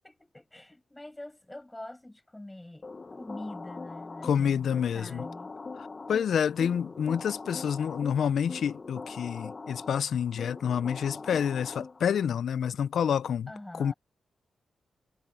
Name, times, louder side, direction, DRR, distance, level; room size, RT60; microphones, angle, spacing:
voice 1, 0.0-5.5 13.5-13.9, left 1 dB, 10° left, 7.6 m, -44 dB
sound 1, 2.8-12.3, left 3 dB, 30° left, 0.7 m, -42 dB
voice 2, 4.2-5.2 6.1-13.5 13.8-13.9, left 8 dB, 80° left, 0.4 m, -28 dB
wide cardioid pair, 105°, 0 cm